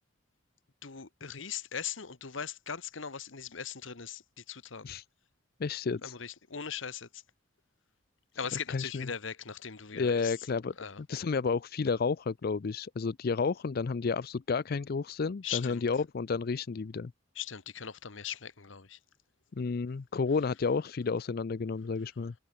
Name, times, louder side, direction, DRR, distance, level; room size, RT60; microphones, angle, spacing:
voice 1, 0.8-4.9 6.0-7.2 8.4-10.4 10.8-11.0 15.4-15.8 17.3-19.0, left 7 dB, 70° left, 1.3 m, -39 dB
voice 2, 5.6-6.1 8.7-9.1 9.9-10.7 11.1-17.1 19.6-22.3, left 4 dB, 50° left, 0.4 m, -31 dB
head